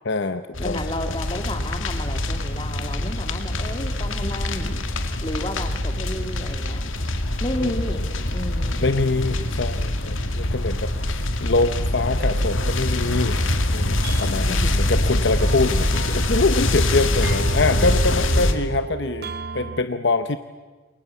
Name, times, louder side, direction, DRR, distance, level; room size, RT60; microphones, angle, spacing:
voice 1, 0.0-0.8 1.1-1.2 7.6-7.7 8.8-13.4 13.7-20.4, left 3 dB, 55° left, 10 dB, 0.9 m, -24 dB
sound 1, 0.5-18.5, left 1 dB, 75° left, 2.2 m, -24 dB
voice 2, 0.6-4.9 5.2-6.8 7.4-8.9 14.3-14.7, left 1 dB, 25° left, 5 dB, 2.4 m, -32 dB
sound 2, 12.2-19.8, right 4 dB, 50° right, 0.9 m, -36 dB
28.0 x 23.0 x 8.4 m, 1.3 s
head